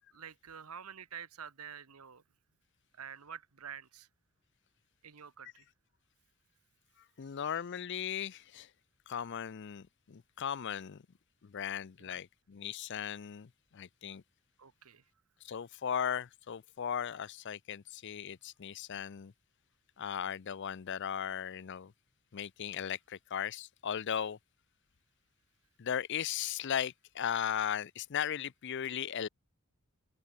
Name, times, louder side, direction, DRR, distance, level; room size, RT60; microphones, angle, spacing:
voice 1, 0.1-2.2 2.9-4.1 5.0-5.7 7.3-7.4 12.0-12.2 14.6-15.0, right 7 dB, 85° right, 1.2 m, -48 dB
voice 2, 7.2-8.7 9.1-11.0 11.4-14.2 15.4-19.3 20.0-21.9 22.3-24.4 25.8-29.3, left 8 dB, 55° left, 0.5 m, -37 dB
open air
head